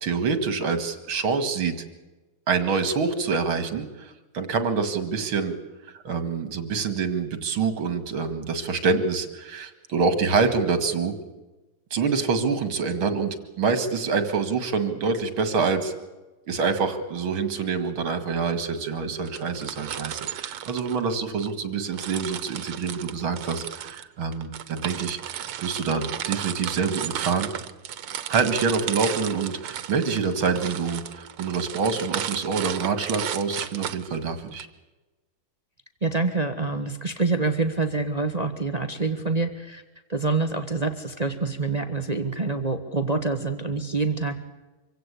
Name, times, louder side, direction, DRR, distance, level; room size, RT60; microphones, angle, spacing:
voice 1, 0.0-1.7 2.5-5.5 6.0-11.1 11.9-15.9 16.5-27.5 28.3-34.7, right 5 dB, 70° right, 10 dB, 2.9 m, -26 dB
sound 1, 19.3-21.5 21.9-34.6, right 10 dB, 90° right, 2.0 m, -34 dB
voice 2, 36.0-39.8 40.1-44.5, right 3 dB, 20° right, 8 dB, 1.2 m, -26 dB
25.5 x 16.5 x 8.4 m, 1.1 s
omnidirectional pair, 2.3 m